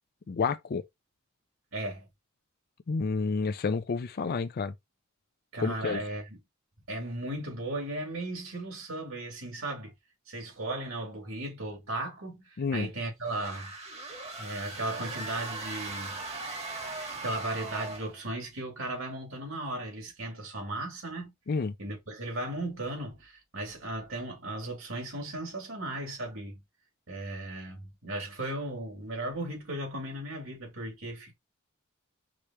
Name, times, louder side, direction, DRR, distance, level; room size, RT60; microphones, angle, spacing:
voice 1, 0.3-0.8 2.9-4.7 5.6-6.0 12.6-12.9 21.5-21.7, left 4 dB, 45° left, 0.4 m, -29 dB
voice 2, 1.7-2.1 5.5-6.4 6.9-9.9 10.3-13.7 14.4-16.2 17.2-21.3 21.8-26.6 27.1-31.3, right 1 dB, 70° right, 2.4 m, -36 dB
sound 1, 13.3-18.2, right 3 dB, 30° right, 1.3 m, -39 dB
4.9 x 3.2 x 2.8 m
head